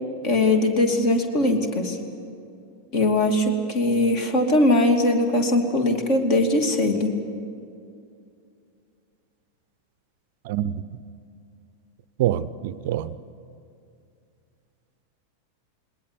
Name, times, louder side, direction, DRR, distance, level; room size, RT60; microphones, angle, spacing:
voice 1, 0.2-2.0 2.9-7.1, left 1 dB, 40° left, 6 dB, 2.6 m, -21 dB
voice 2, 10.4-10.8 12.2-13.1, right 11 dB, 50° right, 17 dB, 0.6 m, -25 dB
20.5 x 19.0 x 9.6 m, 2.4 s
figure-of-eight pair, 90°, 0 cm